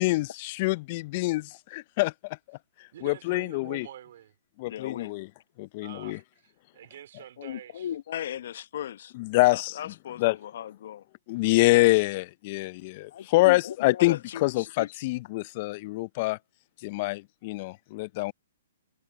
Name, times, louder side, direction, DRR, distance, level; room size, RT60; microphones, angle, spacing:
voice 1, 0.0-2.4 3.0-3.9 4.6-5.3 5.6-6.2 9.2-9.7 10.2-10.3 11.3-16.4 16.8-18.3, left 21 dB, 45° left, 0.7 m, -26 dB
voice 2, 2.9-4.3 5.8-7.9, right 11 dB, 60° right, 4.7 m, -47 dB
voice 3, 4.7-5.1 7.4-9.1 9.5-11.1 13.1-15.0, left 10 dB, 60° left, 1.1 m, -37 dB
hypercardioid pair, 125°, 0 cm